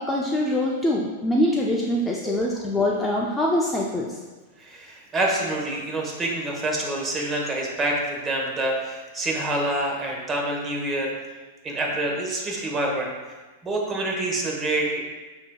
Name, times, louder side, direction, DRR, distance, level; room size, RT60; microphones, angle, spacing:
voice 1, 0.0-4.2, left 1 dB, 10° left, -2 dB, 0.5 m, -24 dB
voice 2, 4.6-11.3 11.6-13.1 13.6-15.0, right 1 dB, 20° right, -1 dB, 1.1 m, -27 dB
8.2 x 2.8 x 2.3 m, 1.3 s
hypercardioid pair, 120°, 0 cm